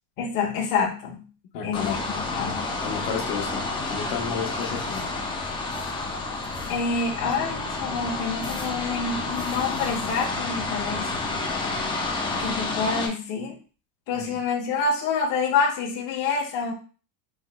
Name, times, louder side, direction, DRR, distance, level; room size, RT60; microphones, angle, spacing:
voice 1, 0.2-1.2 1.6-2.7 6.7-11.1 12.4-13.6 14.1-16.7, left 5 dB, 45° left, -2 dB, 1.1 m, -27 dB
voice 2, 1.5-2.0 2.8-5.1 14.1-14.4, left 6 dB, 65° left, -2 dB, 1.1 m, -32 dB
sound 1, 1.7-13.1, left 3 dB, 10° left, 0.4 m, -30 dB
5.4 x 3.1 x 2.2 m, 0.37 s
cardioid pair, 155°, 45 cm